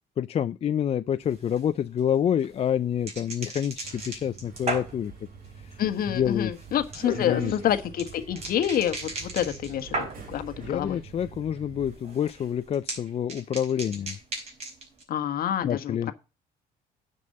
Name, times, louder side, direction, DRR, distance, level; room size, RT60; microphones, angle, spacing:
voice 1, 0.2-5.1 6.1-6.5 7.1-7.5 10.6-14.2 15.6-16.1, left 9 dB, 35° left, 0.4 m, -27 dB
sound 1, 1.2-10.5 10.8-11.4 11.7-15.0, right 2 dB, 40° right, 4.9 m, -38 dB
Subway metro underground, 3.8-11.9, right 5 dB, 60° right, 4.1 m, -44 dB
voice 2, 5.8-11.0 15.1-16.1, left 10 dB, 60° left, 1.4 m, -28 dB
9.6 x 5.4 x 6.6 m
cardioid pair, 110°, 17 cm